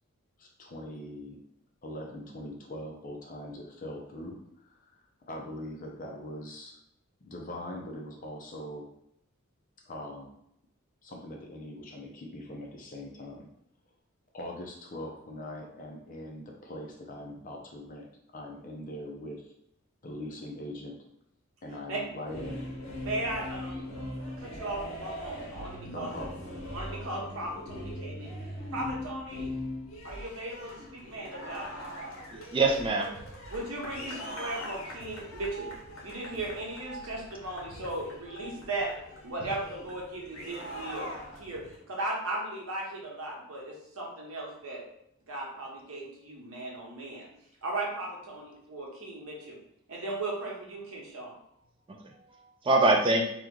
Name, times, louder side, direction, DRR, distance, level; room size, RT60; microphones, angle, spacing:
voice 1, 0.4-1.4 1.8-4.9 5.3-6.8 7.2-8.9 9.8-10.4 11.0-13.5 14.3-18.1 18.3-19.5 20.0-21.0 21.6-22.6 25.8-26.4, left 1 dB, 40° left, 1 dB, 0.5 m, -41 dB
sound 1, 22.2-41.7, left 1 dB, 75° left, 0.9 m, -41 dB
voice 2, 23.0-23.9 24.4-26.1 26.7-28.3 28.7-29.5 30.0-31.7 33.5-35.7 36.0-38.9 39.2-41.1 41.4-44.8 45.3-47.3 47.6-49.6 49.9-51.3, right 2 dB, 75° right, -2 dB, 1.0 m, -37 dB
voice 3, 32.3-33.2 51.9-53.3, right 2 dB, 25° right, 2 dB, 0.4 m, -25 dB
3.0 x 2.2 x 3.6 m, 0.75 s
head